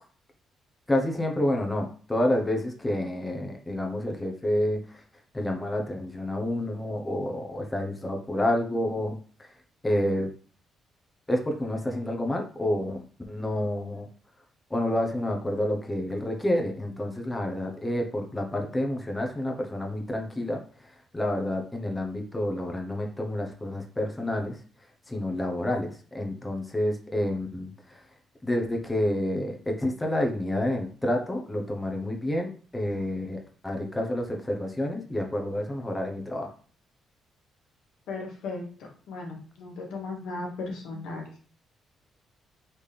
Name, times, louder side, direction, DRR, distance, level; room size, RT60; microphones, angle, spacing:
voice 1, 0.9-5.0 5.3-9.5 9.8-10.3 11.3-14.1 14.7-24.6 25.1-28.0 28.4-36.5, left 1 dB, 15° left, 1 dB, 0.9 m, -29 dB
voice 2, 38.1-38.7 39.1-41.3, left 3 dB, 85° left, 0 dB, 1.4 m, -36 dB
4.2 x 3.5 x 3.4 m, 0.42 s
cardioid pair, 90°, 0 cm